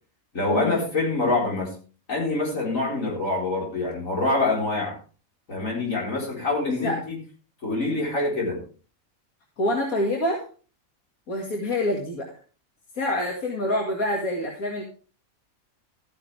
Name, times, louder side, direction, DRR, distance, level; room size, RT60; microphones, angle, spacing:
voice 1, 0.3-1.7 2.1-5.0 5.5-7.2 7.6-8.6, left 2 dB, 70° left, -2 dB, 4.6 m, -25 dB
voice 2, 9.6-10.5 11.3-12.3 13.0-14.8, left 1 dB, 90° left, 0 dB, 2.5 m, -26 dB
14.0 x 9.6 x 3.4 m, 0.37 s
omnidirectional pair, 1.5 m